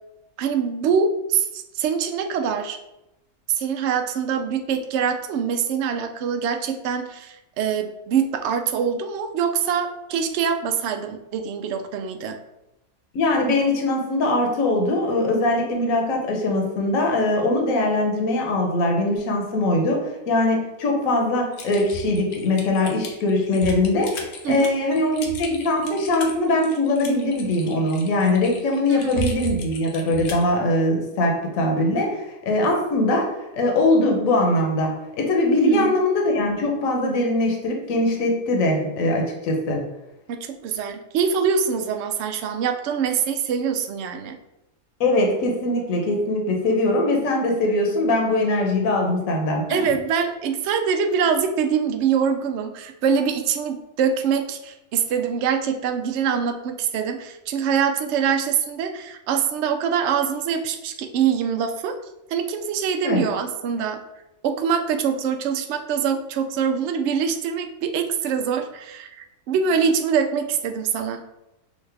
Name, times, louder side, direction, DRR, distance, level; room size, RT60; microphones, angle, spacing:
voice 1, 0.4-2.8 3.5-12.4 24.4-24.7 28.9-29.4 35.6-35.9 40.3-44.4 49.7-62.0 62.3-64.0 64.4-71.2, right 7 dB, 65° right, 6 dB, 0.7 m, -24 dB
voice 2, 13.1-39.8 45.0-49.8 63.0-63.2, left 2 dB, 65° left, 1 dB, 1.2 m, -21 dB
Typing, 21.5-30.5, left 1 dB, 85° left, 1.2 m, -35 dB
6.2 x 2.4 x 3.3 m, 0.91 s
omnidirectional pair, 1.6 m